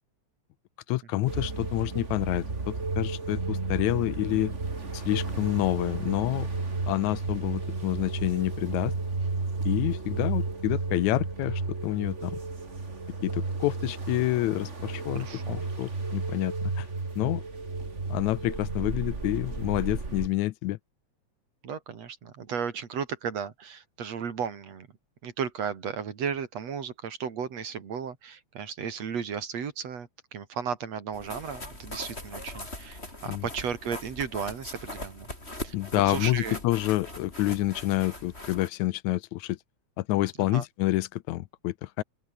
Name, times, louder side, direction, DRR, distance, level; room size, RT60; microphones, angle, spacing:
voice 1, 0.9-4.5 4.9-6.5 6.9-8.9 9.7-12.4 13.2-16.9 17.2-17.4 18.1-20.8 33.3-33.4 35.7-39.6 40.0-42.0, left 17 dB, 80° left, 2.0 m, -28 dB
sound 1, 1.3-20.3, right 3 dB, 25° right, 2.8 m, -33 dB
voice 2, 15.1-15.6 21.6-24.9 25.2-35.3 35.6-36.6 40.5-40.6, right 7 dB, 60° right, 3.7 m, -35 dB
sound 2, 31.1-38.7, left 1 dB, 20° left, 7.1 m, -41 dB
open air
omnidirectional pair, 3.3 m